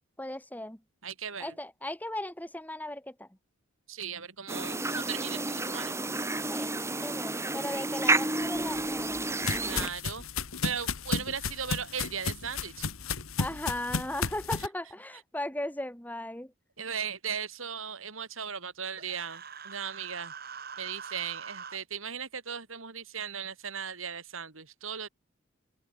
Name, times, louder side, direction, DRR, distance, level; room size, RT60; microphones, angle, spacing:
voice 1, 0.2-0.8 1.4-3.3 6.5-9.3 13.4-16.5, left 1 dB, 10° left, 2.3 m, -37 dB
voice 2, 1.0-1.6 3.9-5.9 9.6-10.2 10.6-12.9 16.8-20.3 20.8-25.1, right 7 dB, 80° right, 3.3 m, -37 dB
sound 1, 4.5-9.9, right 2 dB, 15° right, 3.4 m, -30 dB
sound 2, 8.5-14.7, left 4 dB, 90° left, 2.0 m, -34 dB
Human voice, 19.0-21.8, right 6 dB, 45° right, 6.5 m, -43 dB
head